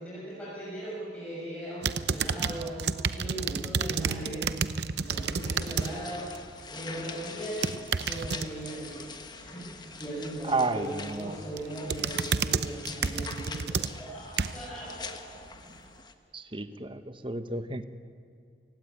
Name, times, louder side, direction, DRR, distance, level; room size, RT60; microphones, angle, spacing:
voice 1, 0.0-2.8 3.1-4.5 4.9-6.3 6.7-15.7, right 1 dB, 5° left, -8 dB, 6.6 m, -39 dB
sound 1, 1.8-5.9 6.3-6.6 7.4-8.5 10.8-11.2 11.6-14.7 15.3-15.4, right 6 dB, 70° right, 0.7 m, -30 dB
sound 2, 5.1-16.1, left 4 dB, 25° left, 1.2 m, -44 dB
voice 2, 10.5-11.4 16.3-17.8, right 3 dB, 30° right, 10 dB, 1.0 m, -31 dB
29.0 x 17.0 x 9.6 m, 2.4 s
head